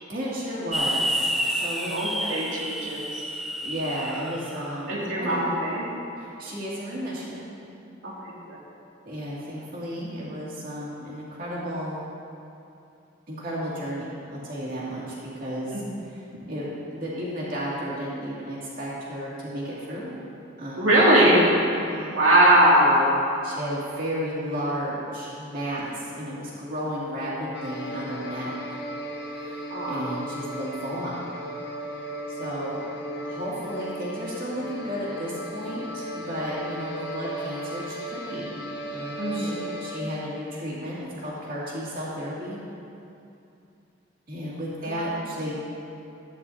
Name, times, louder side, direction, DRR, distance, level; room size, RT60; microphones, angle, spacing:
voice 1, 0.1-1.9 2.2-2.3 2.9-3.1 3.6-5.6 6.2-7.4 9.1-12.1 13.3-16.2 16.5-20.1 20.6-20.9 21.8-22.2 23.4-28.5 29.3-31.3 32.3-32.8 33.2-39.5 39.8-42.6 44.3-45.6, equal, 50° right, -7 dB, 2.5 m, -33 dB
sound 1, 0.7-4.9, equal, ahead, 0.4 m, -29 dB
voice 2, 1.9-3.1 4.9-5.9 8.0-8.1 8.5-8.6 15.7-15.8 20.8-21.4 22.1-23.1 29.7-30.1 39.2-39.7, right 1 dB, 85° right, -6 dB, 2.6 m, -20 dB
sound 2, 27.5-40.0, equal, 60° left, 0.8 m, -36 dB
13.0 x 9.8 x 2.8 m, 2.7 s
head